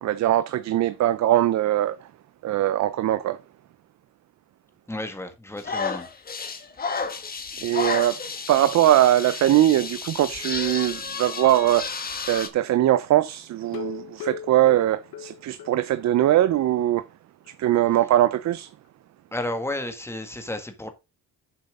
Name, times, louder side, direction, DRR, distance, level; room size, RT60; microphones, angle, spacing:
voice 1, 0.0-2.1 2.4-3.4 7.6-8.2 8.5-12.0 12.3-17.0 17.6-18.7, right 13 dB, 50° right, 0.6 m, -21 dB
voice 2, 4.9-6.1 19.3-20.9, left 1 dB, 5° left, 1.6 m, -32 dB
sound 1, 5.6-12.5, left 5 dB, 25° left, 1.4 m, -32 dB
sound 2, 13.6-16.2 16.5-16.6 17.0-17.1 17.5-17.6, left 9 dB, 80° left, 1.1 m, -38 dB
9.4 x 7.3 x 3.7 m
cardioid pair, 155°, 36 cm